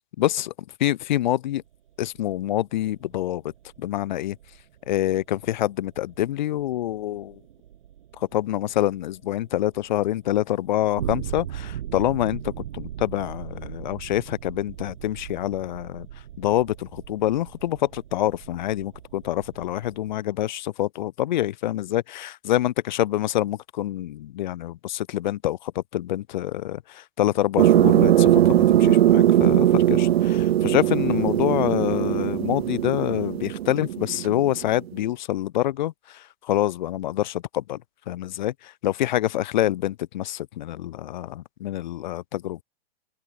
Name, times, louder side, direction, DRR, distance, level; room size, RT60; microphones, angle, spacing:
voice 1, 0.2-0.5 0.8-1.6 2.0-3.4 3.8-4.4 4.9-7.4 8.2-12.4 12.8-16.1 16.4-37.8 38.1-42.6, left 13 dB, 50° left, 7.7 m, -26 dB
sound 1, 1.6-20.2, right 11 dB, 60° right, 7.3 m, -40 dB
sound 2, 27.6-34.8, right 12 dB, 80° right, 0.7 m, -20 dB
open air
hypercardioid pair, 175°, 30 cm